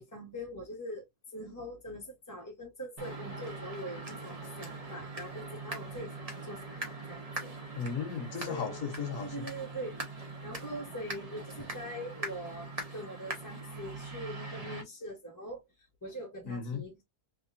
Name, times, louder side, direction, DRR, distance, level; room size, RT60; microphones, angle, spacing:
voice 1, 0.0-7.5 8.5-8.8 9.2-17.0, equal, 15° left, 0.8 m, -43 dB
sound 1, 3.0-14.8, right 3 dB, 25° right, 1.0 m, -42 dB
voice 2, 7.7-9.5 16.5-16.8, left 7 dB, 60° left, 1.3 m, -36 dB
3.7 x 3.2 x 2.5 m
omnidirectional pair, 1.7 m